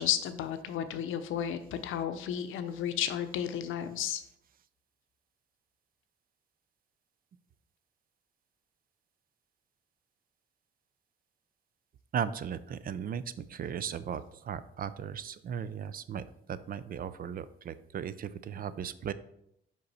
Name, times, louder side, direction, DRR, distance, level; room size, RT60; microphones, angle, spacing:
voice 1, 0.0-4.2, left 9 dB, 85° left, 10 dB, 0.6 m, -33 dB
voice 2, 12.1-13.2 13.5-16.2 16.5-19.1, right 8 dB, 45° right, 15 dB, 0.4 m, -36 dB
5.3 x 5.2 x 4.1 m, 0.75 s
cardioid pair, 90°, 20 cm